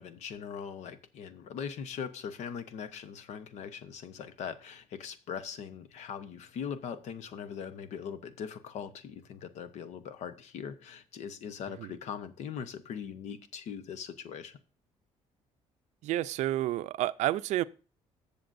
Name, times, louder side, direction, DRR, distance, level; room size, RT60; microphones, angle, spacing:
voice 1, 0.0-14.6, left 7 dB, 70° left, 1.0 m, -41 dB
voice 2, 16.0-17.6, right 14 dB, 70° right, 0.5 m, -30 dB
19.0 x 6.9 x 2.6 m
cardioid pair, 125°, 12 cm